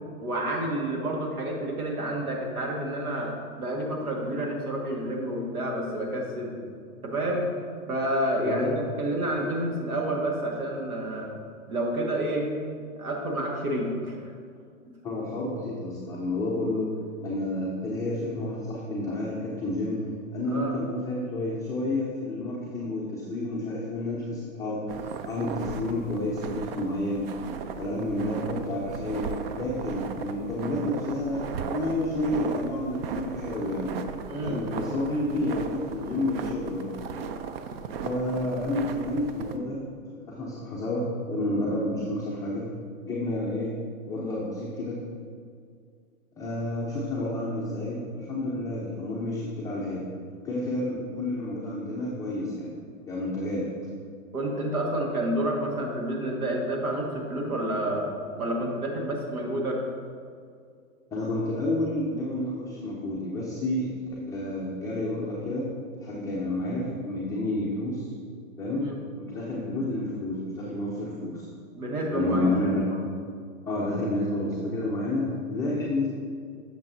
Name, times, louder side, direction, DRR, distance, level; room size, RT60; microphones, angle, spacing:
voice 1, 0.2-3.3 3.6-6.6 7.0-7.5 7.9-11.3 11.7-12.5 13.0-14.3 20.5-20.8 34.3-34.6 54.3-58.1 58.4-59.8 68.8-69.0 71.7-72.6, right 1 dB, 85° right, -1 dB, 1.9 m, -29 dB
voice 2, 8.4-8.8 15.0-16.9 17.2-27.3 27.8-33.9 34.4-36.9 38.0-39.8 40.1-42.7 43.0-43.7 44.1-44.9 46.4-50.1 50.4-52.7 53.1-53.7 61.1-63.9 64.3-65.6 66.0-68.1 68.6-68.9 69.2-71.5 72.1-73.0 73.6-76.1, left 1 dB, 10° left, -7 dB, 0.5 m, -30 dB
sound 1, 24.9-39.6, right 6 dB, 45° right, 0.5 m, -36 dB
8.6 x 6.6 x 2.7 m, 2.2 s
hypercardioid pair, 130°, 43 cm